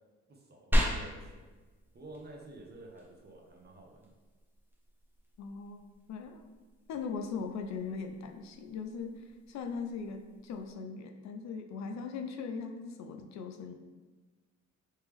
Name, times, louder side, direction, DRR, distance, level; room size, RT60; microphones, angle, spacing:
voice 1, 0.3-1.5 1.9-4.1 6.9-7.0, right 2 dB, 35° right, 0 dB, 0.8 m, -51 dB
sound 1, 0.7-10.7, equal, 5° right, 0.7 m, -38 dB
voice 2, 5.4-6.4 6.9-13.7, left 5 dB, 65° left, 5 dB, 0.5 m, -40 dB
3.3 x 3.1 x 3.4 m, 1.3 s
cardioid pair, 90°, 30 cm